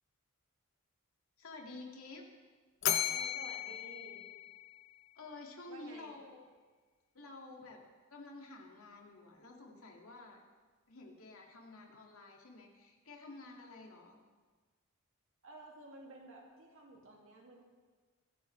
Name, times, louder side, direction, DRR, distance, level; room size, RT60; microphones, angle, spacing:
voice 1, 1.4-2.3 5.2-6.4 7.1-7.8 8.1-10.4 10.9-14.2, left 3 dB, 80° left, 0 dB, 2.2 m, -51 dB
Bell, 2.8-5.1, left 10 dB, 60° left, 0.8 m, -36 dB
voice 2, 3.1-4.2 5.7-6.1 15.4-17.6, right 2 dB, 65° right, -1 dB, 2.3 m, -53 dB
24.0 x 9.2 x 3.3 m, 1.4 s
head